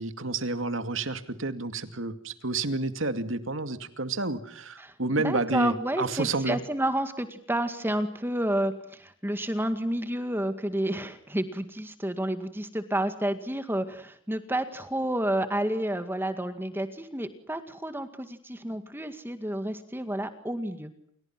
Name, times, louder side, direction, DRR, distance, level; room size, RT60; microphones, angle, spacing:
voice 1, 0.0-6.6, right 2 dB, 70° right, 2.4 m, -30 dB
voice 2, 5.2-20.9, right 1 dB, 10° right, 2.0 m, -30 dB
29.5 x 29.0 x 6.0 m
head